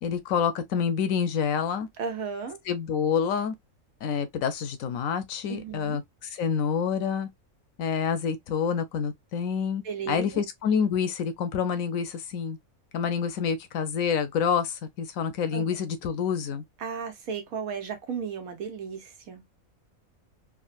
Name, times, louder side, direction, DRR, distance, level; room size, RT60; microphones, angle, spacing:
voice 1, 0.0-1.9 2.7-3.5 4.0-7.3 7.8-12.6 12.9-16.6, left 7 dB, 75° left, 1.0 m, -27 dB
voice 2, 2.0-2.6 5.5-6.0 9.8-10.4 15.5-15.6 16.8-19.4, right 6 dB, 85° right, 1.4 m, -34 dB
3.7 x 2.1 x 2.4 m
omnidirectional pair, 1.5 m